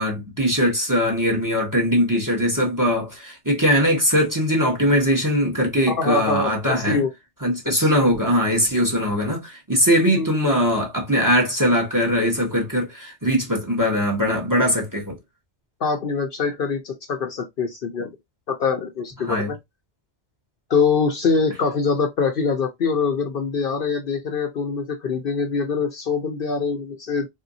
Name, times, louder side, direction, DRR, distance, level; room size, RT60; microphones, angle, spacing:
voice 1, 0.0-7.0 7.4-15.2 19.3-19.5, equal, 20° right, 1.0 m, -21 dB
voice 2, 5.9-7.1 7.7-8.1 10.2-10.3 15.8-18.1 18.5-19.6 20.7-27.3, left 5 dB, 60° left, 0.8 m, -24 dB
3.5 x 2.7 x 2.6 m
omnidirectional pair, 1.2 m